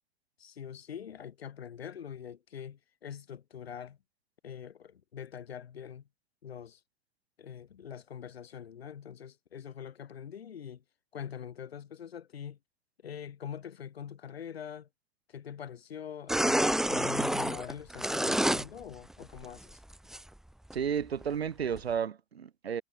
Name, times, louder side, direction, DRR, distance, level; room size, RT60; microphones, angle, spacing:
voice 1, 0.4-4.0 4.4-6.0 6.4-6.8 7.4-10.8 11.1-12.6 13.0-14.9 15.3-19.8, left 8 dB, 70° left, 6.6 m, -44 dB
sound 1, 16.3-18.6 19.1-20.2 20.7-20.8 21.2-21.3 21.8-21.9, right 1 dB, ahead, 0.7 m, -28 dB
voice 2, 20.7-22.8, right 7 dB, 75° right, 2.5 m, -32 dB
figure-of-eight pair, 80°, 31 cm